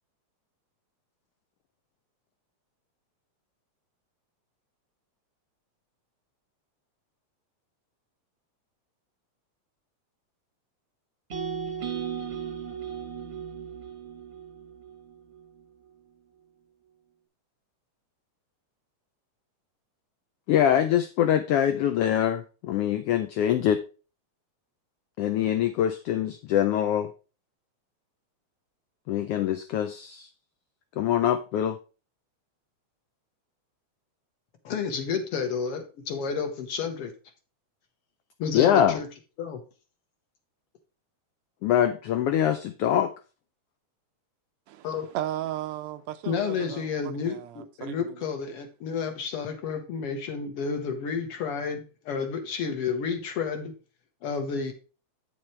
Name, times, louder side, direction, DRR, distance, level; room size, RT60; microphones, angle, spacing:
sound 1, 11.3-15.4, right 7 dB, 40° right, 0.9 m, -36 dB
voice 1, 20.5-23.8 25.2-27.1 29.1-30.3 31.0-31.8 38.5-39.0 41.6-43.1, left 10 dB, 90° left, 1.3 m, -24 dB
voice 2, 34.6-37.1 38.4-39.1 39.4-39.6 44.8-45.1 46.3-53.7 54.2-54.7, left 6 dB, 60° left, 1.8 m, -31 dB
voice 3, 44.7-48.2, right 13 dB, 80° right, 1.7 m, -36 dB
8.4 x 7.4 x 3.2 m
omnidirectional pair, 3.3 m